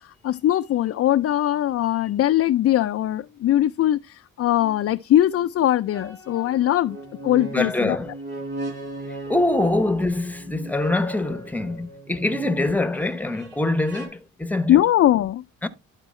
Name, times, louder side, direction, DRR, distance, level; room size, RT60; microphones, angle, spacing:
voice 1, 0.2-7.0 7.2-8.0 14.7-15.4, left 12 dB, 50° left, 0.4 m, -21 dB
sound 1, 4.6-4.8 5.9-14.1, right 2 dB, 35° right, 5.6 m, -38 dB
voice 2, 7.5-8.2 9.1-14.8 15.6-15.7, left 2 dB, 5° left, 0.9 m, -24 dB
11.5 x 4.5 x 3.1 m
cardioid pair, 90°, 30 cm